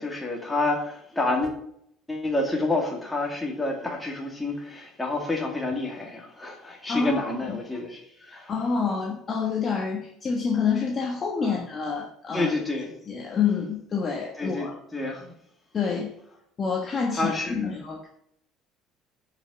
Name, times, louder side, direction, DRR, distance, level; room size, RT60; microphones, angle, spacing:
voice 1, 0.0-1.6 2.1-8.0 8.3-8.5 11.4-11.6 12.3-13.0 14.4-15.3 17.1-17.7, left 2 dB, 10° left, 0 dB, 2.3 m, -29 dB
voice 2, 6.9-7.6 8.3-12.5 13.1-14.8 15.7-16.1 16.6-18.1, left 5 dB, 25° left, 0 dB, 1.4 m, -28 dB
10.5 x 5.6 x 7.1 m, 0.70 s
cardioid pair, 160°, 0 cm